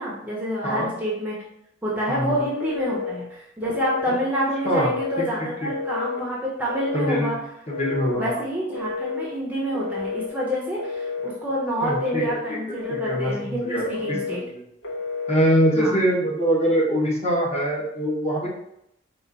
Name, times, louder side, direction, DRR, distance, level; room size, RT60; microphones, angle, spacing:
voice 1, 0.0-1.4 1.8-7.4 8.1-14.4 15.7-16.0, equal, 10° right, -5 dB, 0.7 m, -28 dB
voice 2, 2.1-2.5 4.6-4.9 6.9-7.3 7.7-8.4 11.8-12.2 12.9-14.6 15.3-18.5, equal, 35° left, -4 dB, 1.2 m, -23 dB
Telephone, 2.6-3.2 3.6-4.2 4.6-5.2 5.7-6.2 6.7-7.3 7.7-8.3 8.7-9.3 9.7-10.3 10.8-11.3 11.8-12.4 12.8-13.4 13.8-14.4 14.8-15.4, left 4 dB, 90° left, 0.9 m, -30 dB
4.2 x 2.5 x 4.0 m, 0.79 s
head